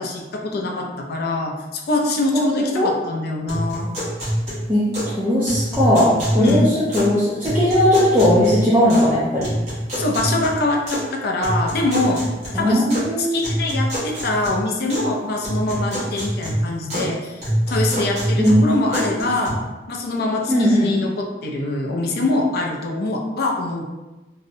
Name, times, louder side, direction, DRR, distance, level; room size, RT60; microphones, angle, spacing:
voice 1, 0.0-3.9 6.4-6.7 9.9-12.2 12.5-12.9 13.2-19.6 19.9-23.9, left 2 dB, 55° left, 1 dB, 0.4 m, -24 dB
sound 1, 3.5-5.2 5.5-7.2 7.4-9.1 9.4-11.1 11.4-13.1 13.4-15.1 15.4-17.1 17.4-19.5, equal, 35° right, 1.0 m, -25 dB
voice 2, 5.2-9.5 12.5-13.3 18.4-18.6 19.0-19.1 20.5-20.9, equal, 10° right, -10 dB, 0.4 m, -18 dB
2.6 x 2.1 x 2.6 m, 1.1 s
head